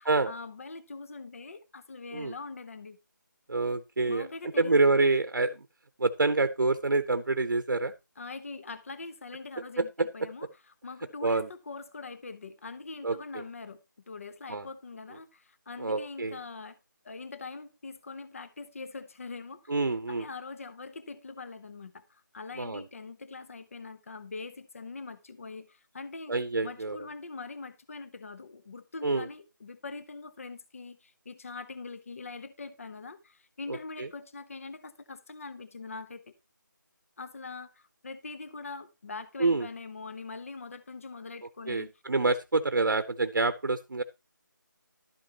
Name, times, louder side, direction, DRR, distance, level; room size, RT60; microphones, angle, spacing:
voice 1, 0.0-3.0 4.1-4.8 8.2-13.8 14.1-16.8 17.0-19.7 20.1-26.3 26.6-36.3 37.2-41.9, left 3 dB, 40° left, 0.7 m, -43 dB
voice 2, 3.5-4.3 4.6-5.7 6.0-7.9 9.8-10.1 11.2-11.5 13.0-13.4 14.5-14.7 15.8-16.4 19.7-20.3 22.6-22.8 26.3-27.0 29.0-29.3 33.7-34.1 39.4-39.7 41.7-44.0, right 3 dB, 75° right, 0.8 m, -27 dB
12.0 x 7.9 x 2.9 m
figure-of-eight pair, 170°, 11 cm